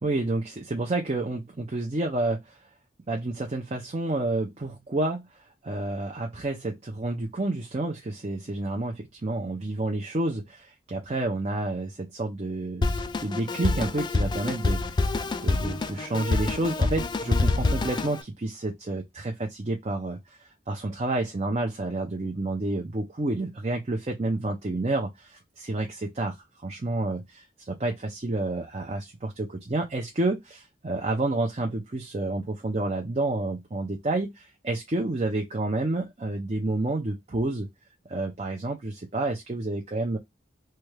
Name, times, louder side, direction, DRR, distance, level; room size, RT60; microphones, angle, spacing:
voice 1, 0.0-2.6 3.1-15.1 15.4-20.4 20.7-26.4 26.6-37.7 38.1-40.2, right 2 dB, 35° right, 0.5 m, -29 dB
Drum kit, 12.8-18.2, left 3 dB, 25° left, 0.3 m, -26 dB
3.2 x 2.3 x 3.2 m
head